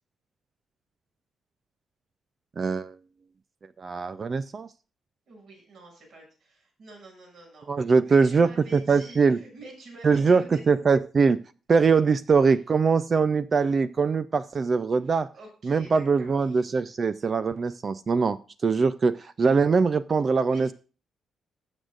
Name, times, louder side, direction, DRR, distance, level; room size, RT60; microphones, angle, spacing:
voice 1, 2.6-2.9 3.8-4.7 7.7-9.4 10.0-11.4 11.7-15.3 15.6-20.7, right 5 dB, 30° right, 14 dB, 0.4 m, -22 dB
voice 2, 5.3-10.6 15.0-16.6 20.5-20.6, right 2 dB, 55° right, 1 dB, 6.8 m, -47 dB
19.0 x 8.0 x 2.5 m, 0.37 s
cardioid pair, 175°, 0 cm